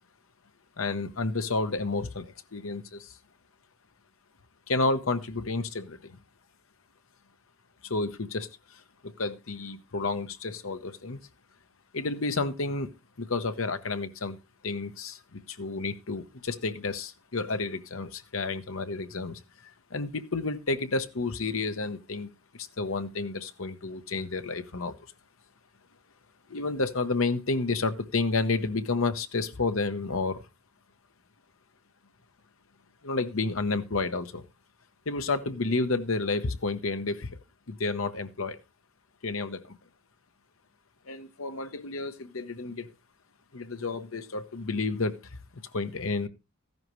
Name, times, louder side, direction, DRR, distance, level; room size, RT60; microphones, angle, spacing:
voice 1, 0.8-3.2 4.7-6.2 7.8-11.2 11.9-12.9 13.2-14.4 14.6-24.9 26.5-30.4 33.0-34.4 35.1-37.4 37.7-38.6 39.2-39.8 41.1-42.9 43.5-46.3, left 3 dB, 65° left, 10 dB, 1.0 m, -31 dB
14.0 x 10.5 x 3.1 m, 0.27 s
head